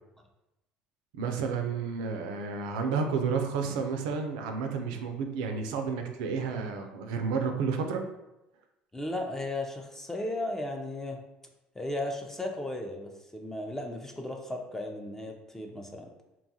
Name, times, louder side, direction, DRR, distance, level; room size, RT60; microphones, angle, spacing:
voice 1, 1.1-8.0, right 5 dB, 80° right, 5 dB, 0.3 m, -31 dB
voice 2, 8.9-11.2 11.8-16.1, left 1 dB, 10° left, 3 dB, 0.4 m, -35 dB
2.8 x 2.3 x 2.7 m, 0.96 s
hypercardioid pair, 70°, 4 cm